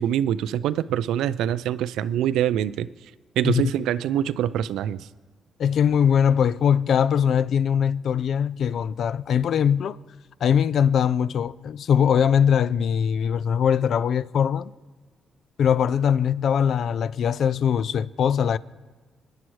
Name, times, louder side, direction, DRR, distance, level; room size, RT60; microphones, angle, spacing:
voice 1, 0.0-2.9 3.4-5.0, right 11 dB, 90° right, 0.3 m, -24 dB
voice 2, 5.6-10.0 10.4-14.7 15.6-18.6, left 8 dB, 70° left, 0.3 m, -21 dB
25.0 x 10.0 x 3.1 m
cardioid pair, 85°, 0 cm